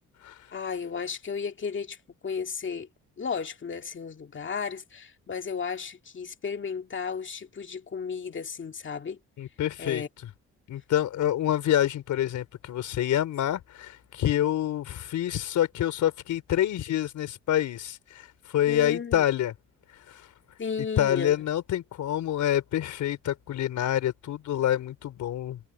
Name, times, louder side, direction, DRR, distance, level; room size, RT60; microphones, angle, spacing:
voice 1, 0.5-2.0 2.2-2.9 3.2-9.2 9.8-10.1 18.7-19.2 20.6-21.3, left 6 dB, 40° left, 2.0 m, -34 dB
voice 2, 9.4-10.0 10.7-19.5 19.9-20.3 21.0-25.6, left 11 dB, 75° left, 4.2 m, -27 dB
cardioid pair, 90°, 30 cm